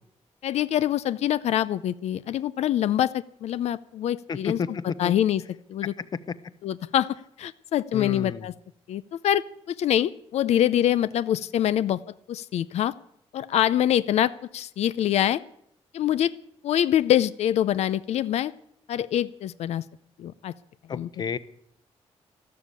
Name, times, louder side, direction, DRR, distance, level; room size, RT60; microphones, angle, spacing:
voice 1, 0.4-4.6 5.0-5.4 5.7-5.9 6.6-8.5 8.9-12.0 12.3-12.9 13.3-15.4 15.9-16.3 16.6-18.5 18.9-19.8 20.2-20.5 20.9-21.1, left 11 dB, 90° left, 16 dB, 0.6 m, -25 dB
voice 2, 4.3-5.1 6.3-6.4 7.9-8.5 20.9-21.4, left 6 dB, 40° left, 16 dB, 0.8 m, -31 dB
13.5 x 13.0 x 8.4 m, 0.70 s
wide cardioid pair, 160°, 11 cm